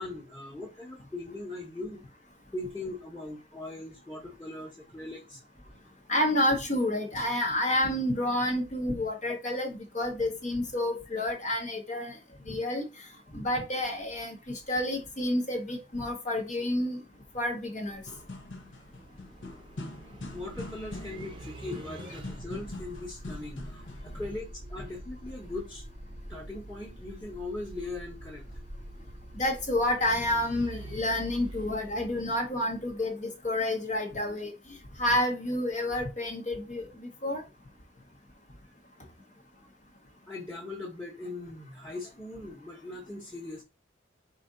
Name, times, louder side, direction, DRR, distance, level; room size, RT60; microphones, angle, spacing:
voice 1, 0.0-2.0 2.5-5.4 20.3-25.8 26.3-28.6 40.3-43.6, left 2 dB, 10° left, 1.1 m, -40 dB
voice 2, 6.1-12.2 12.5-12.9 13.3-17.0 17.3-18.0 29.3-34.5 35.0-37.4, left 1 dB, 40° left, 0.9 m, -29 dB
sound 1, 17.1-33.1, right 1 dB, 25° right, 0.7 m, -45 dB
sound 2, 17.9-24.2, left 2 dB, 75° left, 0.9 m, -43 dB
4.9 x 2.7 x 3.8 m
head